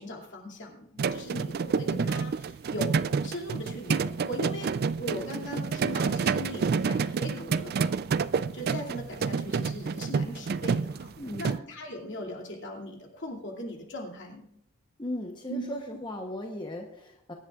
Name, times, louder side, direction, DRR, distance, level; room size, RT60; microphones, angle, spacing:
voice 1, 0.0-7.9 8.5-11.1 11.4-14.5 15.5-15.6, equal, 60° left, 0 dB, 2.5 m, -39 dB
sound 1, 1.0-11.6, right 5 dB, 45° right, 0.3 m, -29 dB
voice 2, 11.2-11.6 15.0-17.3, left 1 dB, 20° left, 2 dB, 0.9 m, -37 dB
22.5 x 10.5 x 2.4 m, 0.75 s
head